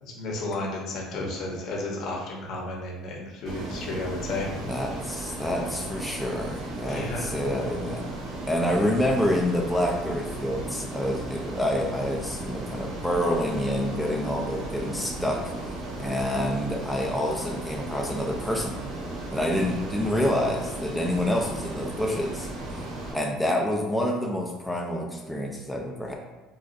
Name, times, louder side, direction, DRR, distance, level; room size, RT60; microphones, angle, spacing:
voice 1, 0.0-4.6 6.9-7.3 8.7-8.9 19.5-19.7, left 2 dB, 55° left, -1 dB, 0.8 m, -33 dB
Ocean, 3.5-23.1, right 1 dB, 60° right, 1.0 m, -35 dB
voice 2, 4.7-8.1 8.5-18.8 19.3-22.8 23.1-26.1, left 1 dB, ahead, -1 dB, 0.3 m, -28 dB
3.9 x 2.3 x 2.5 m, 1.1 s
cardioid pair, 115°, 0 cm